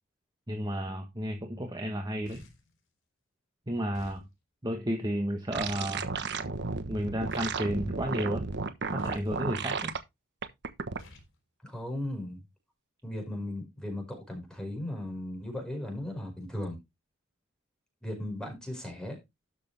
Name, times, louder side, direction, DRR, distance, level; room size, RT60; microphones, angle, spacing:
voice 1, 0.5-2.4 3.7-4.2 4.6-6.1 6.9-8.4 8.9-9.9, equal, 20° right, 1.3 m, -32 dB
sound 1, 2.2-2.7 3.9-4.3 5.5-5.9 7.3-7.7 9.0-9.4 11.0-11.3, left 1 dB, 60° left, 3.6 m, -51 dB
sound 2, 5.5-10.0 10.4-11.0, right 4 dB, 55° right, 1.2 m, -33 dB
voice 2, 11.6-12.4 13.0-16.8 18.0-19.2, left 1 dB, 5° left, 5.1 m, -37 dB
12.5 x 6.8 x 3.4 m
head